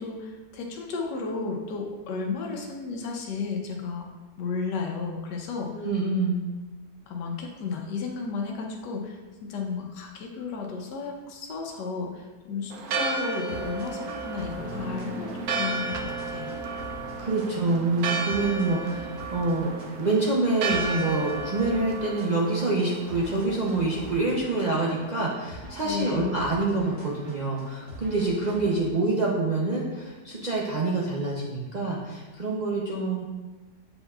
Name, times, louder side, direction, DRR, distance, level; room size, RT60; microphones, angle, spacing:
voice 1, 0.0-4.1 4.4-5.9 7.1-16.5 25.8-26.3, left 4 dB, 85° left, 1 dB, 1.4 m, -33 dB
voice 2, 5.7-6.4 17.2-19.7 20.0-33.2, right 2 dB, 50° right, -5 dB, 0.5 m, -26 dB
Church bell, 12.7-24.3, right 4 dB, 70° right, 1.0 m, -34 dB
sound 1, 12.8-28.9, right 1 dB, 25° right, 1.1 m, -45 dB
sound 2, 14.6-30.4, right 1 dB, 5° right, 1.4 m, -45 dB
7.9 x 5.3 x 2.4 m, 1.2 s
omnidirectional pair, 1.8 m